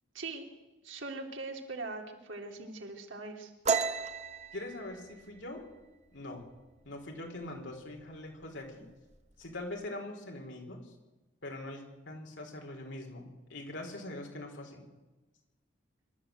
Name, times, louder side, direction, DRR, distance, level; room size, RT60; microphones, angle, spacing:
voice 1, 0.1-0.5 0.8-3.5, right 3 dB, 75° right, 2 dB, 3.2 m, -41 dB
sound 1, 3.7-7.1 7.4-7.8 8.1-8.7 8.9-9.7, right 5 dB, 35° right, 1.1 m, -34 dB
voice 2, 4.5-5.6 6.1-6.4 6.8-8.9 9.4-10.8 11.4-14.8, left 1 dB, 70° left, 2 dB, 4.8 m, -42 dB
25.5 x 13.0 x 8.1 m, 1.2 s
head